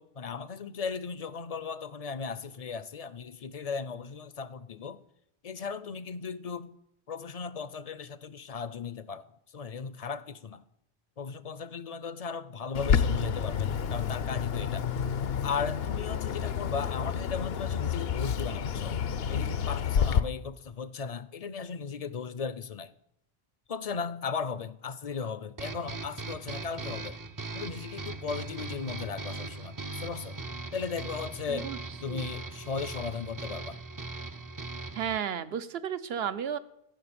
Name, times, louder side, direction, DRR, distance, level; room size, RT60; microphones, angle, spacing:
voice 1, 0.0-5.0 5.4-6.7 7.1-9.3 9.5-10.6 11.2-14.9 15.4-19.0 19.3-22.9 23.7-27.2 27.5-30.4 30.7-33.8, left 5 dB, 45° left, 0.5 m, -36 dB
Bird, 12.7-20.2, left 7 dB, 75° left, 0.9 m, -29 dB
sound 1, 25.6-35.2, right 3 dB, 30° right, 0.4 m, -39 dB
voice 2, 35.0-36.6, right 8 dB, 75° right, 1.0 m, -33 dB
15.0 x 5.8 x 8.7 m
omnidirectional pair, 1.0 m